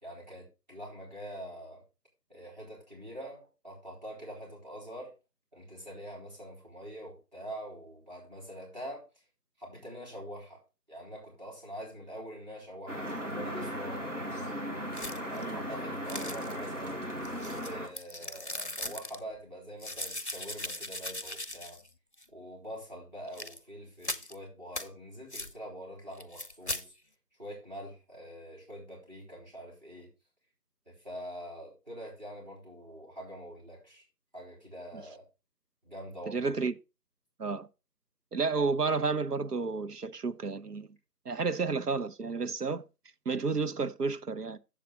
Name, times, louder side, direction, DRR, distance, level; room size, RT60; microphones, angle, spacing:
voice 1, 0.0-1.8 2.3-5.1 5.5-9.0 9.6-10.6 10.9-14.5 15.3-17.0 17.6-21.8 22.3-26.9 27.4-30.1 30.9-34.0 34.3-35.2 35.8-36.5 41.4-41.5, equal, 25° right, 3.6 m, -45 dB
sound 1, 12.9-17.9, equal, 50° right, 2.0 m, -37 dB
sound 2, 14.9-15.4 16.1-16.7 17.2-19.2 19.8-21.9 22.2-22.3 23.3-23.6 24.0-24.3 24.7-24.9 25.3-25.5 26.2-26.8, left 1 dB, 45° left, 0.7 m, -39 dB
voice 2, 36.3-36.7 37.4-37.7 38.3-40.9 41.3-42.8 43.3-44.6, right 4 dB, 75° right, 0.8 m, -31 dB
8.3 x 7.5 x 4.3 m
figure-of-eight pair, 175°, 48 cm